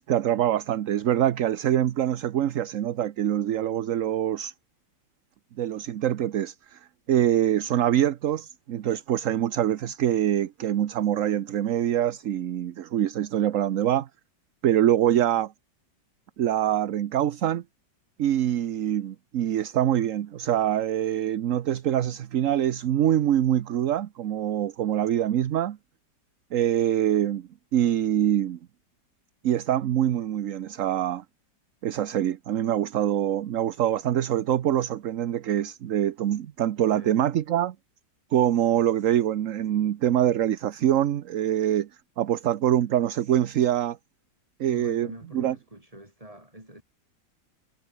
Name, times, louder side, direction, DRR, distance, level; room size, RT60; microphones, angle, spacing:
voice 1, 0.0-4.5 5.6-6.8 7.1-14.1 14.6-15.5 16.4-17.6 18.2-25.8 26.5-28.6 29.4-31.2 31.8-37.7 38.3-41.9 42.2-44.0 44.6-45.1 45.3-45.5, right 11 dB, 55° right, 1.0 m, -24 dB
voice 2, 36.9-37.2 44.6-46.8, right 1 dB, 20° right, 7.3 m, -45 dB
omnidirectional pair, 1.9 m